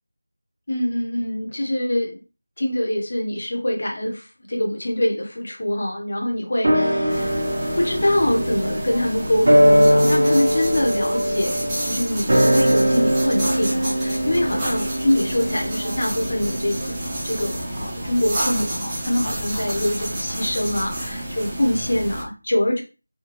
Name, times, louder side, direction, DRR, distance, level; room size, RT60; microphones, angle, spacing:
voice 1, 0.7-2.2 2.6-4.2 4.5-7.4 7.8-17.0 17.2-22.8, left 1 dB, 50° left, 1 dB, 0.9 m, -24 dB
sound 1, 6.6-17.2 17.5-17.6, equal, 50° right, 1.2 m, -21 dB
sound 2, 7.1-22.2, right 1 dB, 10° right, 0.7 m, -30 dB
3.6 x 2.3 x 3.0 m, 0.31 s
figure-of-eight pair, 175°, 0 cm